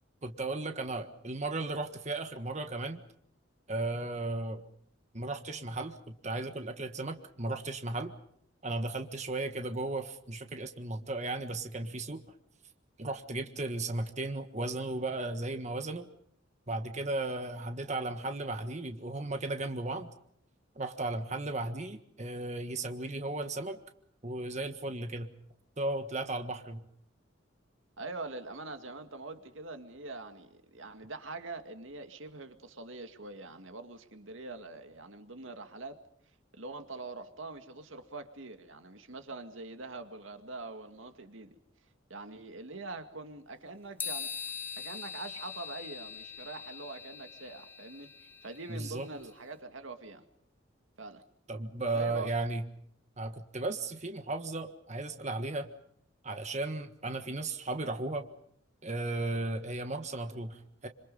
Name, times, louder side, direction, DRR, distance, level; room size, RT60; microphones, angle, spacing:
voice 1, 0.2-3.0 3.7-4.6 5.1-8.1 8.6-12.2 13.0-16.0 16.7-20.1 20.7-23.8 24.2-25.3 25.8-26.8 48.7-49.1 51.5-52.6 53.2-55.7 56.2-58.3 58.8-60.9, right 2 dB, 35° right, 1.6 m, -35 dB
voice 2, 28.0-36.0 36.5-41.6 42.1-44.3 44.8-48.1 48.4-50.2 51.0-51.2 51.9-52.3, right 3 dB, 80° right, 2.1 m, -44 dB
sound 1, 44.0-49.3, left 6 dB, 10° left, 1.2 m, -42 dB
27.0 x 26.5 x 5.5 m
head